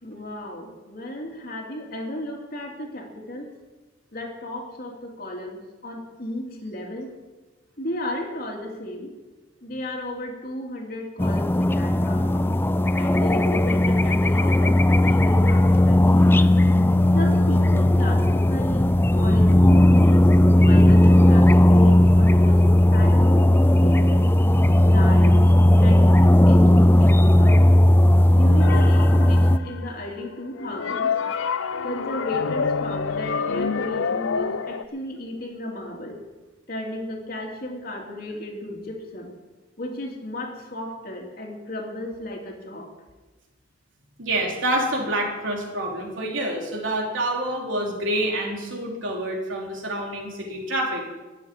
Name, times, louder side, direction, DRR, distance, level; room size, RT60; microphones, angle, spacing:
voice 1, 0.0-3.5 4.1-7.1 7.8-9.1 9.6-12.5 13.0-16.3 17.1-20.3 20.6-22.6 22.9-24.3 24.9-25.4 25.8-27.7 28.3-31.1 31.8-36.2 36.7-39.3 39.8-42.9, left 1 dB, 50° left, 1 dB, 2.8 m, -34 dB
sound 1, 11.2-29.6, left 1 dB, 10° left, 0.4 m, -16 dB
sound 2, 28.6-30.0 30.6-34.8, left 5 dB, 85° left, 0.6 m, -27 dB
voice 2, 44.2-51.0, right 1 dB, 75° right, 0 dB, 3.5 m, -27 dB
14.0 x 7.3 x 9.7 m, 1.2 s
head